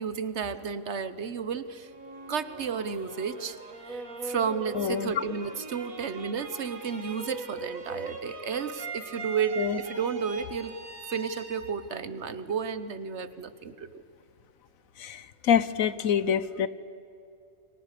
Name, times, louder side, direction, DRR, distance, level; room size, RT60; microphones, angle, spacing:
voice 1, 0.0-1.9 2.3-3.6 3.9-10.7 11.1-14.0, right 6 dB, 60° right, 13 dB, 1.3 m, -32 dB
sound 1, 1.8-12.9, right 3 dB, 85° right, 2.9 m, -41 dB
voice 2, 4.8-5.1 9.6-9.8 15.0-15.2 15.5-16.7, left 8 dB, 85° left, 15 dB, 1.3 m, -25 dB
29.5 x 23.5 x 6.8 m, 2.6 s
omnidirectional pair, 1.4 m